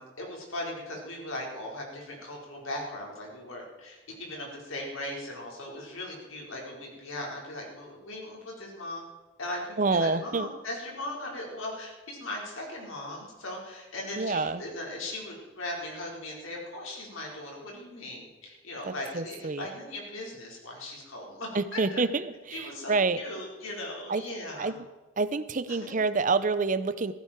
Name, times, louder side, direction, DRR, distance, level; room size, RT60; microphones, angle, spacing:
voice 1, 0.0-9.0 9.4-22.0 22.5-24.7 25.7-26.0, left 1 dB, 75° left, -1 dB, 4.6 m, -38 dB
voice 2, 9.8-10.5 14.2-14.6 18.9-19.7 21.5-23.2 24.1-24.2 24.6-24.8 25.2-27.1, right 4 dB, 40° right, 14 dB, 0.6 m, -27 dB
15.5 x 15.5 x 4.5 m, 1.2 s
head